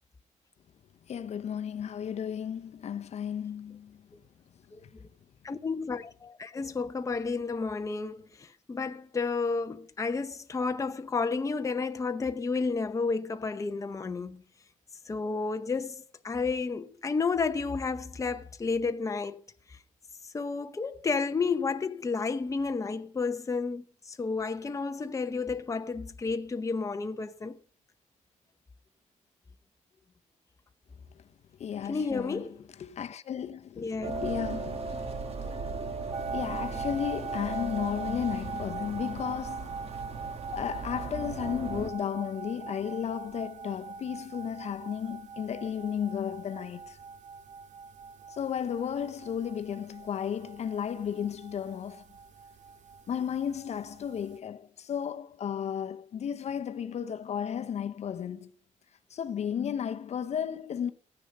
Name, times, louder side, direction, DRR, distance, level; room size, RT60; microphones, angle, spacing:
voice 1, 1.1-4.0 31.6-32.4 32.8-35.0 35.4-35.5 36.1-39.8 40.5-47.0 48.3-52.0 53.1-58.5 59.1-60.9, left 8 dB, 55° left, 0.8 m, -34 dB
voice 2, 5.4-14.4 15.1-19.4 20.3-27.6 31.9-32.6 33.8-34.2, left 4 dB, 25° left, 0.8 m, -31 dB
sound 1, 34.0-41.9, right 3 dB, 50° right, 1.4 m, -37 dB
sound 2, 36.1-54.4, right 5 dB, 65° right, 1.8 m, -42 dB
14.5 x 9.9 x 5.3 m
cardioid pair, 140°, 13 cm